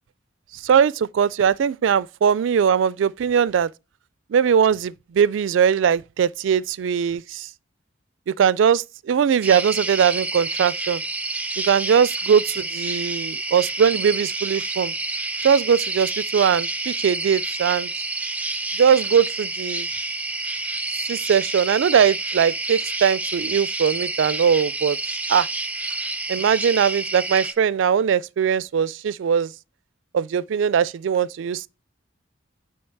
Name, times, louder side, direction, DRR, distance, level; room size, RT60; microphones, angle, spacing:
voice 1, 0.6-3.7 4.3-7.5 8.4-11.0 11.7-14.9 15.4-17.9 18.8-19.9 21.1-25.0 25.3-25.5 26.3-29.5 30.1-31.7, right 7 dB, 75° right, 0.3 m, -20 dB
sound 1, 9.4-27.5, right 2 dB, 10° right, 0.6 m, -29 dB
9.6 x 3.3 x 4.5 m
head